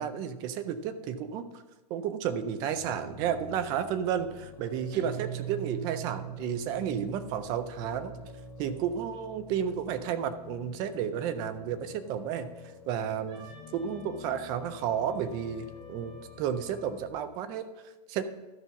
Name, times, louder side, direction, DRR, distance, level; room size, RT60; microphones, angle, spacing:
voice 1, 0.0-1.5 1.9-8.1 8.6-12.5 12.9-17.7 18.1-18.2, right 8 dB, 20° right, 11 dB, 0.4 m, -32 dB
Piano, 2.8-17.1, left 3 dB, 25° left, 2.6 m, -49 dB
Guitar, 4.9-7.5, right 13 dB, 80° right, 0.7 m, -40 dB
Wind instrument woodwind instrument, 13.3-17.1, left 4 dB, 50° right, 3.6 m, -53 dB
12.5 x 5.4 x 5.7 m, 1.1 s
supercardioid pair, 170°, 21 cm